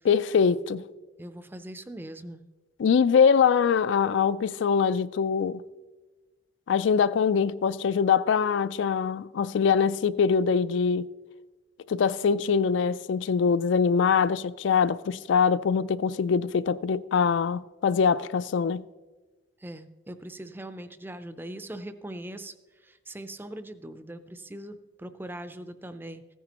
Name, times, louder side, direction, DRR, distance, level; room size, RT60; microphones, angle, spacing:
voice 1, 0.0-0.8 2.8-5.6 6.7-11.1 11.9-18.8, left 6 dB, 70° left, 0.3 m, -23 dB
voice 2, 1.2-2.4 19.6-22.5 22.8-26.2, right 1 dB, 10° right, 0.4 m, -41 dB
15.5 x 10.0 x 2.9 m
head